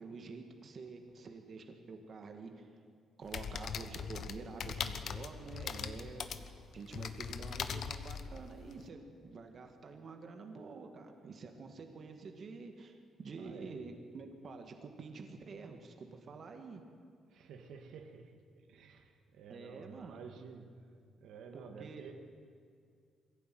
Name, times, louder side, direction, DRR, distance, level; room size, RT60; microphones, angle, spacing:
voice 1, 0.0-2.7 3.2-16.8 19.5-20.2 21.5-22.1, right 4 dB, 40° right, 4 dB, 2.0 m, -48 dB
sound 1, 3.2-8.8, left 6 dB, 50° left, 1.1 m, -41 dB
voice 2, 13.4-13.8 17.3-20.7 21.2-22.1, right 6 dB, 75° right, 4 dB, 2.0 m, -51 dB
22.0 x 16.0 x 9.4 m, 2.2 s
cardioid pair, 145°, 0 cm